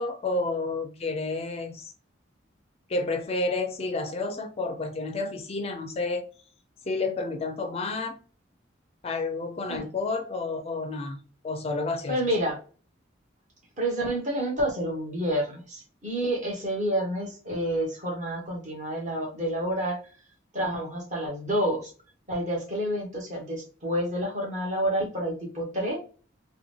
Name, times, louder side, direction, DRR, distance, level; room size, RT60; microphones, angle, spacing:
voice 1, 0.0-1.9 2.9-6.2 6.9-8.2 9.0-11.2 11.4-12.2, left 3 dB, 30° left, 6 dB, 0.4 m, -30 dB
voice 2, 12.1-12.6 13.8-20.0 20.5-21.9 22.3-26.0, right 1 dB, 40° right, -1 dB, 1.3 m, -29 dB
3.5 x 2.2 x 3.1 m, 0.37 s
head